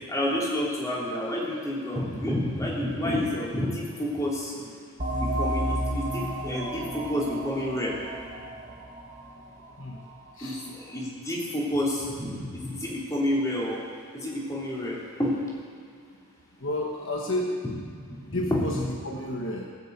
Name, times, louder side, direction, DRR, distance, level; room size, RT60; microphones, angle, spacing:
voice 1, 0.1-4.8 5.2-8.0 10.4-13.8 14.1-15.4 18.5-18.6, left 1 dB, 15° left, -5 dB, 3.1 m, -29 dB
sound 1, 5.0-10.3, right 1 dB, 35° right, 1.8 m, -32 dB
voice 2, 16.6-17.6 18.3-19.7, left 1 dB, 60° left, 0 dB, 1.3 m, -31 dB
19.0 x 6.8 x 8.0 m, 2.2 s
head